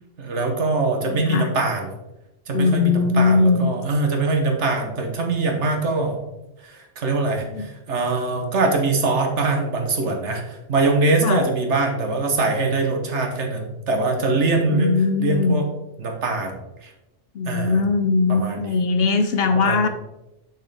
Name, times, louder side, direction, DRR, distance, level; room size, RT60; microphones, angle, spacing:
voice 1, 0.2-1.9 2.5-6.3 6.6-15.7 16.0-16.9 17.4-17.8 18.3-18.8 19.5-19.8, right 3 dB, 70° right, 3 dB, 1.4 m, -23 dB
voice 2, 1.0-1.5 2.5-3.6 7.5-7.7 11.2-11.4 14.6-15.6 17.3-19.9, left 4 dB, 60° left, 8 dB, 0.7 m, -20 dB
6.4 x 6.2 x 3.4 m, 0.96 s
omnidirectional pair, 1.2 m